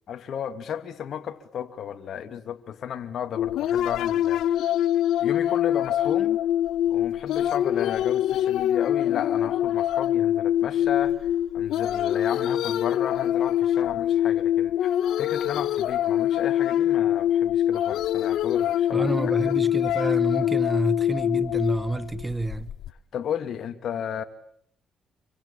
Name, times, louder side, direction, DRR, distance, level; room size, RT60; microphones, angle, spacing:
voice 1, 0.1-4.7 5.2-6.4 6.9-19.5 23.1-24.2, left 8 dB, 65° left, 2.7 m, -34 dB
sound 1, 3.4-22.9, left 11 dB, 80° left, 1.1 m, -24 dB
voice 2, 18.9-22.7, right 2 dB, 15° right, 1.4 m, -29 dB
27.5 x 24.5 x 7.4 m
cardioid pair, 90°, 0 cm